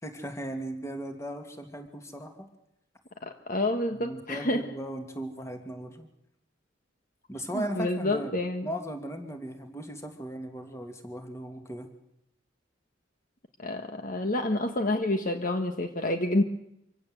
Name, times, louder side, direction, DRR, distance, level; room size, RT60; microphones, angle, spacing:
voice 1, 0.0-2.5 3.9-6.1 7.3-8.4 8.6-11.9, right 1 dB, 15° left, 5 dB, 2.6 m, -37 dB
voice 2, 3.2-4.7 7.5-8.7 13.6-16.4, left 1 dB, 45° left, 6 dB, 1.5 m, -28 dB
25.5 x 16.5 x 8.0 m, 0.79 s
head